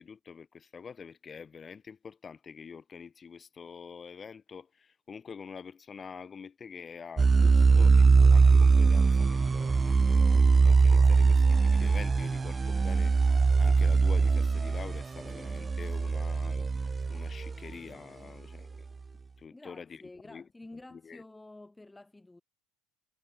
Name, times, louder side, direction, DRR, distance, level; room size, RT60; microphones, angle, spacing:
voice 1, 0.0-18.9 19.4-21.2, left 6 dB, 30° left, 6.9 m, -46 dB
sound 1, 7.2-17.7, right 4 dB, 20° right, 0.8 m, -22 dB
voice 2, 19.5-22.4, left 2 dB, 10° left, 3.7 m, -50 dB
supercardioid pair, 95°, 0 cm